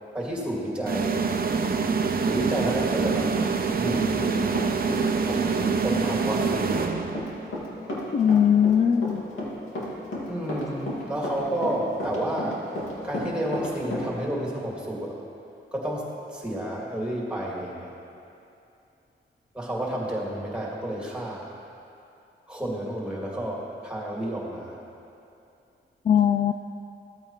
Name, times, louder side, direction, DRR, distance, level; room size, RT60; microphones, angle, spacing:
voice 1, 0.1-1.2 2.2-3.3 3.8-4.5 5.8-7.2 10.3-12.6 13.0-15.2 15.7-18.0 19.5-21.6 22.5-24.8, right 1 dB, 5° right, -4 dB, 2.4 m, -31 dB
sound 1, 0.9-7.5, right 5 dB, 45° right, 0.7 m, -25 dB
Run, 3.3-5.0 5.3-14.1, left 1 dB, 70° left, 2.3 m, -33 dB
voice 2, 8.1-9.2 26.0-26.5, left 8 dB, 35° left, 7 dB, 0.3 m, -20 dB
14.5 x 8.7 x 3.2 m, 2.7 s
cardioid pair, 80°, 21 cm